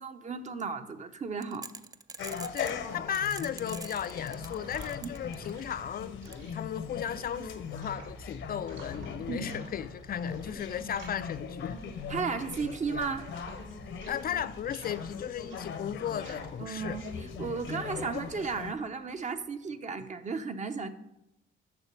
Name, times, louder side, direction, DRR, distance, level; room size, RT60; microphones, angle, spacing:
voice 1, 0.0-1.7 5.0-5.1 9.3-9.5 12.1-13.3 16.6-17.0 17.4-20.9, right 5 dB, 35° right, 0.8 m, -34 dB
sound 1, 1.4-2.8 3.1-5.7 6.2-6.3, right 4 dB, 20° right, 0.4 m, -44 dB
sound 2, 2.2-18.7, left 6 dB, 75° left, 0.9 m, -40 dB
voice 2, 2.5-11.8 14.1-17.0, left 9 dB, 50° left, 0.4 m, -36 dB
sound 3, 3.6-19.5, right 3 dB, 70° right, 3.8 m, -51 dB
7.1 x 5.8 x 6.8 m
cardioid pair, 90°, 20 cm